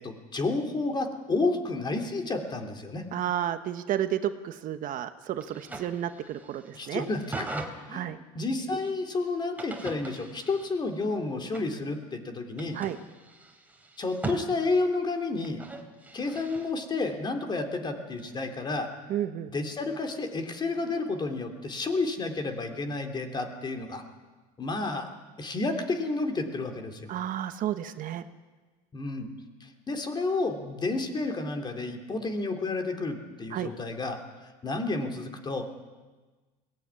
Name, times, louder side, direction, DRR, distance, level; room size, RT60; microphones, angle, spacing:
voice 1, 0.0-3.0 6.7-12.8 14.0-15.6 16.1-18.9 19.5-24.0 24.6-25.1 25.4-27.0 28.9-29.3 29.6-35.7, left 3 dB, 25° left, 5 dB, 3.2 m, -31 dB
voice 2, 3.1-7.1 7.9-8.2 12.7-13.0 19.1-19.5 27.1-28.2 33.5-33.7, right 11 dB, 50° right, 10 dB, 1.2 m, -31 dB
Creaky Wooden Drawers, 5.4-7.7 9.6-11.0 11.5-11.8 12.6-14.4 15.4-16.7 18.2-18.5, right 2 dB, 10° right, 3.3 m, -41 dB
22.0 x 17.5 x 9.8 m, 1.3 s
supercardioid pair, 120°, 18 cm